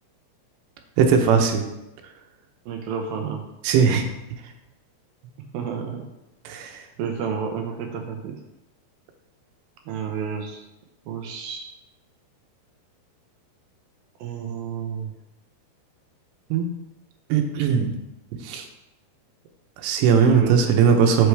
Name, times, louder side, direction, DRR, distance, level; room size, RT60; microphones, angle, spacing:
voice 1, 1.0-1.6 3.6-4.0 6.5-6.8 16.5-16.7 17.3-17.9 18.4-18.6 19.8-21.3, right 6 dB, 90° right, 4 dB, 3.1 m, -19 dB
voice 2, 2.7-3.4 5.5-6.0 7.0-8.4 9.9-10.6 11.1-11.7 14.2-15.1 20.3-20.6, right 7 dB, 75° right, 2 dB, 2.3 m, -30 dB
8.0 x 7.0 x 3.3 m, 0.93 s
omnidirectional pair, 4.8 m